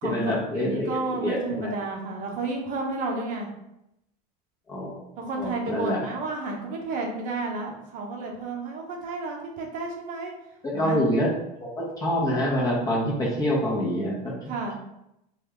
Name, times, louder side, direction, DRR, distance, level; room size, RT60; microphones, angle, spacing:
voice 1, 0.0-1.7 4.7-5.0 5.4-6.0 10.6-11.3 11.6-14.3, equal, 15° left, -3 dB, 0.8 m, -26 dB
voice 2, 0.5-3.5 5.2-10.3 10.7-11.0 14.5-14.7, right 3 dB, 40° right, 1 dB, 0.7 m, -31 dB
2.8 x 2.3 x 3.4 m, 0.83 s
cardioid pair, 150°, 20 cm